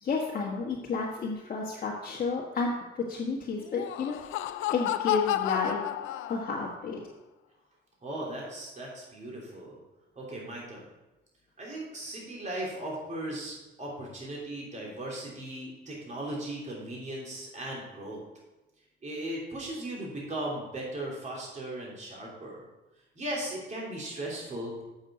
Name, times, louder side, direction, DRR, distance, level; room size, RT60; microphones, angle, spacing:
voice 1, 0.0-4.2 4.7-5.9 6.3-7.0, left 4 dB, 45° left, -4 dB, 1.5 m, -31 dB
Laughter, 3.6-6.8, left 13 dB, 85° left, 0.4 m, -32 dB
voice 2, 8.0-9.8 10.1-10.9 11.6-18.2 19.0-22.6 23.1-24.8, right 1 dB, 35° right, -4 dB, 3.2 m, -37 dB
7.7 x 6.4 x 5.0 m, 1.0 s
cardioid pair, 90°, 20 cm